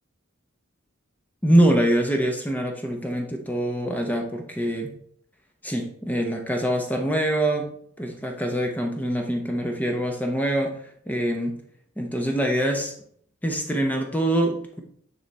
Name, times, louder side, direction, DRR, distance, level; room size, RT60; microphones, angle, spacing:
voice 1, 1.4-4.9 5.6-7.7 8.0-10.7 11.1-11.6 12.0-12.9 13.4-14.8, right 1 dB, 10° left, 2 dB, 0.7 m, -24 dB
9.2 x 3.4 x 4.1 m, 0.64 s
head